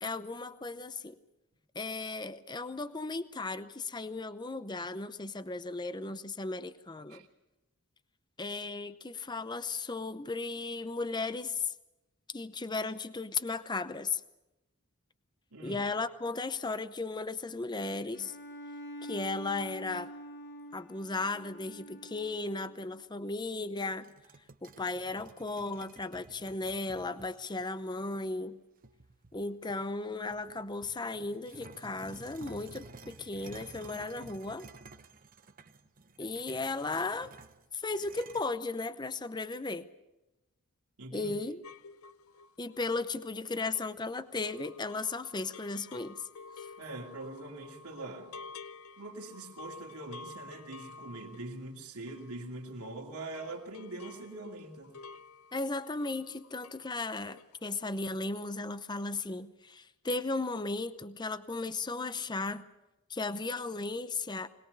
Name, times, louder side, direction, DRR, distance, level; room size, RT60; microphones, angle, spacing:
voice 1, 0.0-1.2 1.7-7.2 8.4-11.7 12.3-14.2 15.6-18.4 19.0-20.1 20.7-24.1 24.6-28.6 29.3-34.7 36.2-37.3 37.7-39.9 41.1-41.6 42.6-46.3 46.6-46.7 55.5-62.6 63.1-64.5, left 3 dB, 20° left, 13 dB, 0.7 m, -36 dB
voice 2, 15.5-15.8 41.0-41.3 46.8-48.4 49.0-55.0, right 2 dB, 85° right, -1 dB, 2.6 m, -43 dB
Bowed string instrument, 18.1-22.8, right 1 dB, 55° left, 4.0 m, -46 dB
sound 1, 24.0-27.7 28.3-28.4 28.8-29.9 30.3-38.4, right 3 dB, 40° right, 1.0 m, -53 dB
sound 2, 41.6-52.9 53.2-56.9 57.2-57.6 57.8-58.0, left 4 dB, 75° left, 0.7 m, -51 dB
21.5 x 20.5 x 6.7 m, 0.98 s
head